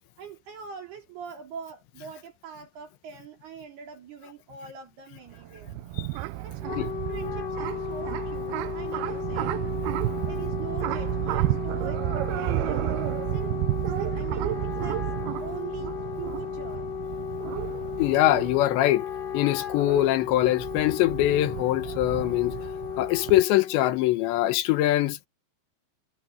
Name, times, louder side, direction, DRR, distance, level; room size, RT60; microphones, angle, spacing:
voice 1, 0.2-5.7 6.4-9.7 10.0-12.9 13.3-15.0 15.4-16.9, right 7 dB, 65° right, 6.0 m, -43 dB
sound 1, 5.3-23.4, right 17 dB, 85° right, 2.3 m, -32 dB
Wind instrument woodwind instrument, 6.4-23.9, left 9 dB, 60° left, 3.0 m, -35 dB
voice 2, 18.0-19.1 19.3-22.6 23.0-25.3, left 15 dB, 80° left, 3.5 m, -23 dB
omnidirectional pair, 5.1 m